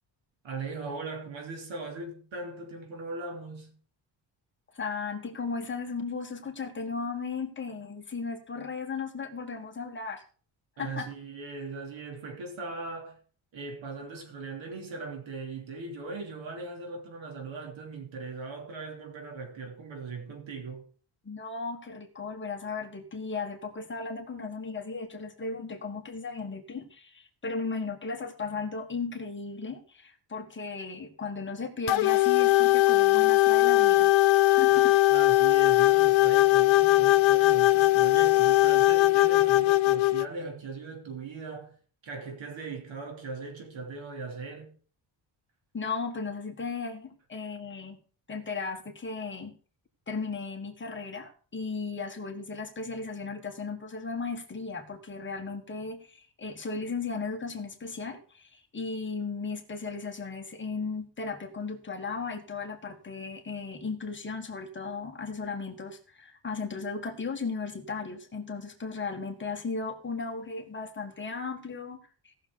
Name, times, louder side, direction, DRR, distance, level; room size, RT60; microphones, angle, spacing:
voice 1, 0.4-3.7 10.8-13.2 13.5-20.8 34.7-41.7 42.0-44.7, right 3 dB, 80° right, 3.3 m, -39 dB
voice 2, 4.7-10.2 10.8-11.1 21.2-34.1 34.4-34.9 45.7-48.0 48.3-49.5 50.1-72.0 72.2-72.3, left 4 dB, 25° left, 1.7 m, -36 dB
sound 1, 31.9-40.3, left 17 dB, 80° left, 0.6 m, -20 dB
17.0 x 6.6 x 4.0 m
wide cardioid pair, 150°, 45 cm